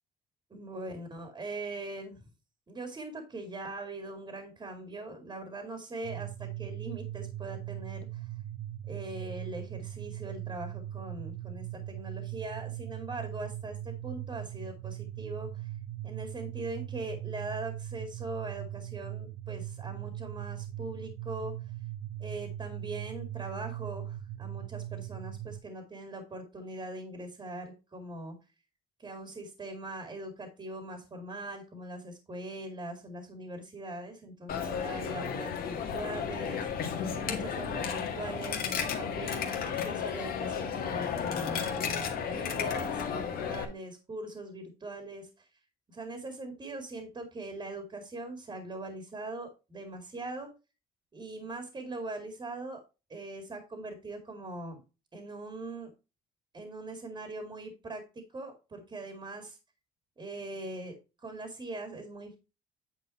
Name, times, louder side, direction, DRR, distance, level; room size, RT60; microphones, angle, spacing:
voice 1, 0.5-2.2 2.7-8.3 8.9-15.7 16.0-21.5 22.2-28.3 29.0-45.5 45.9-50.5 51.1-52.8 53.1-54.8 55.1-55.9 56.5-58.0 58.3-59.6 60.2-62.4, right 2 dB, 25° right, 6 dB, 2.2 m, -41 dB
sound 1, 6.0-25.6, right 13 dB, 70° right, 0.8 m, -40 dB
Coin (dropping), 34.5-43.6, left 7 dB, 60° left, 1.8 m, -33 dB
9.2 x 4.5 x 4.2 m, 0.29 s
cardioid pair, 110°, 17 cm